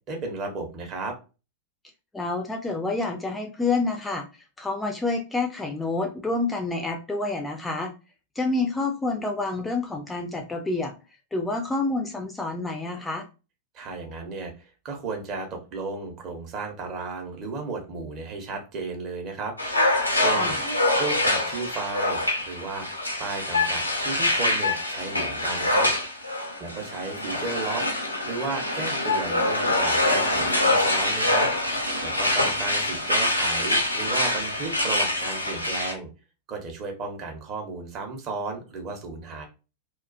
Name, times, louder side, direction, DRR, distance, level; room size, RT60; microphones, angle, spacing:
voice 1, 0.1-1.1 13.7-19.5 20.2-20.6 20.9-22.9 23.2-25.9 26.6-27.8 28.2-31.5 32.0-36.1 36.5-39.5, right 3 dB, 35° right, 3 dB, 0.7 m, -34 dB
voice 2, 2.1-7.9 8.4-10.9 11.3-13.3 20.4-20.6 26.6-26.7, left 3 dB, 10° left, 3 dB, 0.4 m, -28 dB
sound 1, 19.6-35.9, left 1 dB, 85° left, 0.5 m, -25 dB
2.3 x 2.3 x 2.4 m, 0.31 s
figure-of-eight pair, 90°, 0 cm